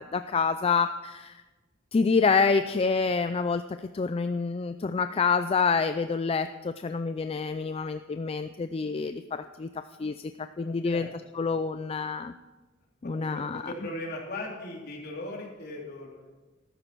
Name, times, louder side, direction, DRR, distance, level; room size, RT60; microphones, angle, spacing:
voice 1, 0.0-1.4 1.9-3.6 3.9-9.7 10.0-11.1 11.3-12.3 13.0-13.7, left 4 dB, 30° left, 10 dB, 0.4 m, -27 dB
voice 2, 10.6-11.1 11.4-11.5 13.0-16.3, left 1 dB, 55° left, -3 dB, 3.8 m, -39 dB
14.5 x 13.0 x 4.6 m, 1.2 s
head